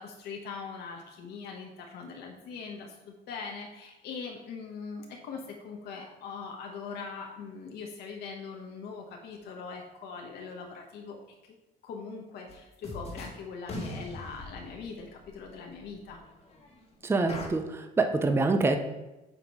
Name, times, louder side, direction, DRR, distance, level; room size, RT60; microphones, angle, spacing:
voice 1, 0.0-11.5 11.8-16.2, left 5 dB, 75° left, 1 dB, 1.0 m, -41 dB
sound 1, 12.5-12.6 12.8-13.4 13.7-16.8 17.3-17.5, left 1 dB, 40° left, 1.5 m, -41 dB
voice 2, 17.0-18.8, right 3 dB, 15° right, 6 dB, 0.6 m, -26 dB
8.2 x 3.0 x 5.3 m, 1.0 s
cardioid pair, 110°, 17 cm